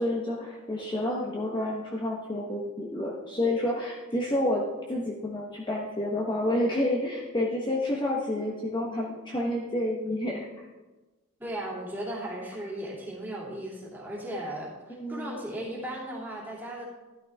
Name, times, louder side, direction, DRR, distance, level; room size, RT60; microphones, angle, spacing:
voice 1, 0.0-10.4 15.0-15.4, left 1 dB, 20° left, -3 dB, 1.1 m, -29 dB
voice 2, 11.4-16.8, right 1 dB, 10° right, -5 dB, 2.7 m, -36 dB
12.5 x 11.5 x 3.5 m, 1.2 s
head